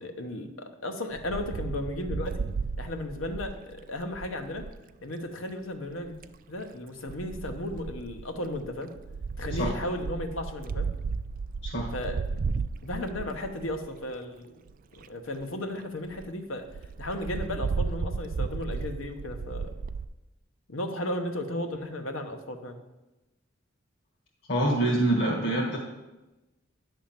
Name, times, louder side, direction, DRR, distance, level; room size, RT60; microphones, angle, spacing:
voice 1, 0.0-2.5 2.8-4.7 5.0-6.2 6.5-8.9 9.4-10.9 11.9-12.2 12.8-14.6 14.9-16.7 17.0-19.8 20.7-22.8, left 1 dB, 75° left, 6 dB, 1.0 m, -35 dB
Wind, 1.2-4.8 5.9-6.4 7.1-14.0 14.7-14.8 15.0-15.1 15.4-15.5 15.8-15.9 16.1-16.3 16.7-20.0, right 4 dB, 40° right, 0.3 m, -34 dB
voice 2, 24.5-25.8, right 1 dB, 55° left, -5 dB, 1.7 m, -25 dB
10.5 x 3.6 x 7.3 m, 1.0 s
head